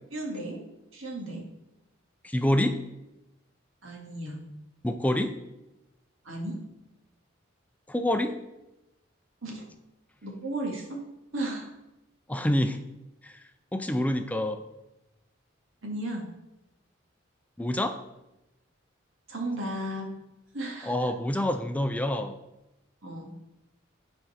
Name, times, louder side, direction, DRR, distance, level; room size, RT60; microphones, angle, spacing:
voice 1, 0.1-0.6 0.9-1.4 3.8-4.4 6.2-6.6 9.4-9.6 10.2-11.0 11.3-11.7 15.8-16.3 19.3-20.1 20.5-21.1 23.0-23.3, right 1 dB, 90° right, 0 dB, 2.0 m, -34 dB
voice 2, 2.2-2.8 4.8-5.4 7.9-8.3 12.3-12.8 13.2-13.4 13.7-14.6 17.6-18.0 20.8-22.4, left 1 dB, 10° left, 7 dB, 0.4 m, -27 dB
9.0 x 4.4 x 5.6 m, 0.94 s
head